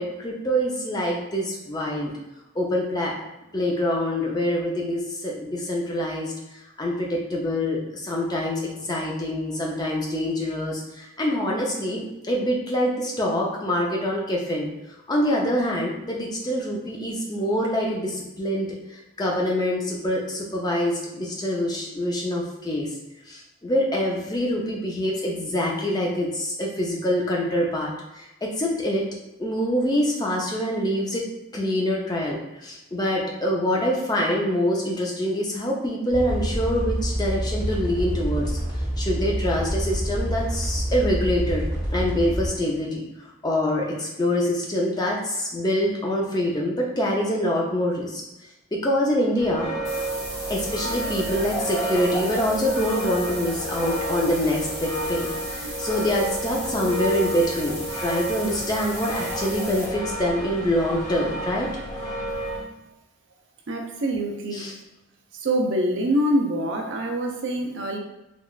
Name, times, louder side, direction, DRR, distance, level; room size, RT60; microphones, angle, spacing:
voice 1, 0.0-2.1 2.6-3.1 3.5-6.3 6.8-14.7 15.1-18.7 19.2-22.9 23.3-27.9 28.4-29.1 29.4-31.2 31.5-38.6 39.0-41.6 41.9-43.0 43.4-48.2 48.7-49.8 50.5-61.7 64.6-64.7, equal, 20° left, -2 dB, 0.4 m, -25 dB
sound 1, 36.1-42.5, equal, 40° left, 1.1 m, -27 dB
sound 2, 49.4-62.6, right 1 dB, 70° left, 1.3 m, -30 dB
sound 3, 49.8-59.8, equal, 5° right, 0.8 m, -37 dB
voice 2, 63.7-64.8 65.3-68.0, right 1 dB, 55° right, 1 dB, 0.5 m, -25 dB
3.5 x 2.3 x 2.3 m, 0.97 s
head